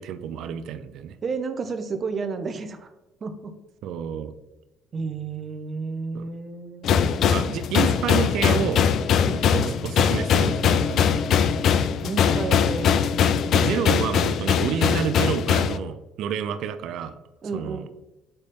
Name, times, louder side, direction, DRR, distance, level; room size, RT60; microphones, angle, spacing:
voice 1, 0.0-1.1 3.8-4.3 6.1-6.3 7.3-8.8 9.5-11.0 13.5-17.2 17.5-17.9, right 9 dB, 70° right, 11 dB, 0.5 m, -29 dB
voice 2, 1.2-2.9 3.2-3.5 4.9-6.9 9.2-9.5 12.0-12.9 17.4-17.9, right 4 dB, 35° right, 8 dB, 0.7 m, -31 dB
sound 1, 6.8-15.8, left 7 dB, 55° left, 0.4 m, -21 dB
6.8 x 4.2 x 3.4 m, 1.0 s
cardioid pair, 125°, 0 cm